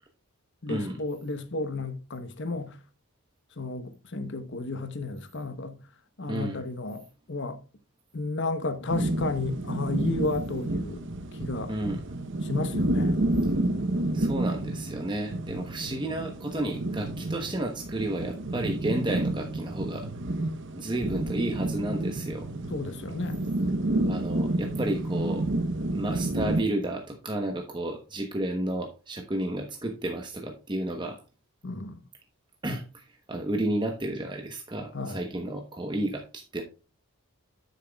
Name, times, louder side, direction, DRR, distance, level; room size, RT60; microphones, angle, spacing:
voice 1, 0.6-2.8 3.6-5.8 6.2-7.6 8.1-11.0 11.4-11.7 12.4-13.2 22.7-23.4 31.6-32.0 34.9-35.3, left 3 dB, 55° left, 0.9 m, -32 dB
voice 2, 6.3-6.6 11.7-12.0 13.4-13.5 14.1-20.1 20.7-22.5 24.0-25.5 25.9-31.2 32.6-36.6, right 1 dB, 20° right, 1.0 m, -32 dB
sound 1, 8.9-26.6, right 1 dB, 55° right, 0.8 m, -30 dB
10.0 x 8.3 x 2.3 m
head